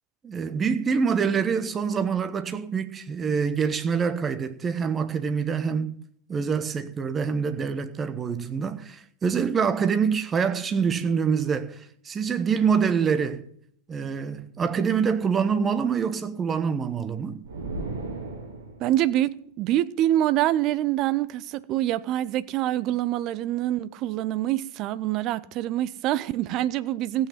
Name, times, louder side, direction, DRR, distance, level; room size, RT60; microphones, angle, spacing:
voice 1, 0.2-6.0 6.3-13.4 13.9-17.4, right 6 dB, 20° right, 1.1 m, -25 dB
sound 1, 17.4-19.0, right 3 dB, 65° right, 3.2 m, -35 dB
voice 2, 18.8-27.3, right 13 dB, 40° right, 0.6 m, -25 dB
15.5 x 8.5 x 5.7 m
figure-of-eight pair, 90°, 0 cm